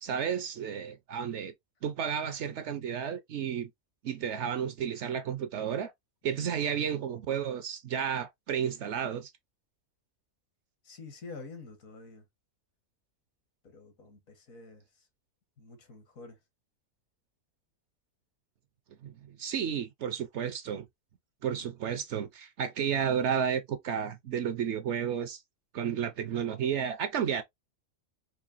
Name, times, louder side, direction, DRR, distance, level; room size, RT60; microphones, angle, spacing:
voice 1, 0.0-1.5 1.8-3.7 4.0-5.9 6.2-9.3 19.0-20.9 21.4-25.4 25.7-27.4, right 8 dB, 65° right, 0.8 m, -32 dB
voice 2, 10.8-12.2 13.6-15.1 15.6-16.4, left 3 dB, 75° left, 1.6 m, -48 dB
4.8 x 2.7 x 2.4 m
omnidirectional pair, 1.5 m